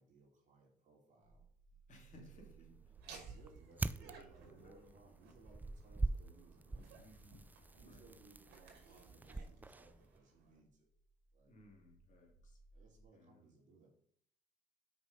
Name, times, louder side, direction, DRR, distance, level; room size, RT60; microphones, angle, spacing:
voice 1, 0.0-1.4 2.1-7.1 7.7-10.9 11.3-11.5 12.7-13.9, right 3 dB, 50° right, 0 dB, 2.9 m, -64 dB
sound 1, 1.2-13.0, right 6 dB, 85° left, 1.4 m, -65 dB
voice 2, 1.9-2.5 4.4-5.0 7.0-8.1 11.5-12.6 13.1-13.5, left 1 dB, 45° left, 1 dB, 2.6 m, -62 dB
sound 2, 2.1-10.2, right 2 dB, 10° right, 0.4 m, -45 dB
Laughter, 2.9-10.6, right 4 dB, 80° right, 2.3 m, -59 dB
6.2 x 5.1 x 5.3 m, 0.63 s
cardioid pair, 110°, 17 cm